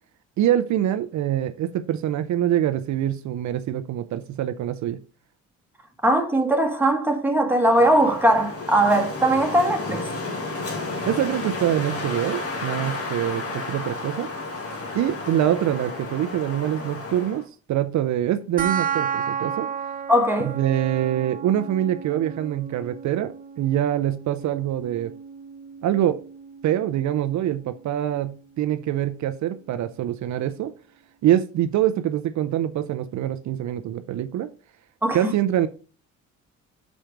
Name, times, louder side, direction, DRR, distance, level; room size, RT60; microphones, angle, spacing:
voice 1, 0.4-5.0 11.1-14.3 14.9-17.4 17.7-19.7 20.4-25.1 25.8-26.2 26.6-30.7 31.2-34.5 35.1-35.7, right 11 dB, 70° right, 0.6 m, -24 dB
voice 2, 6.0-10.1 20.1-20.6 35.0-35.3, right 1 dB, 5° right, 1.5 m, -20 dB
Wind, 7.6-17.4, left 3 dB, 50° left, 2.1 m, -32 dB
sound 1, 18.6-29.6, right 7 dB, 30° right, 0.7 m, -34 dB
6.2 x 4.5 x 5.0 m
cardioid pair, 90°, 30 cm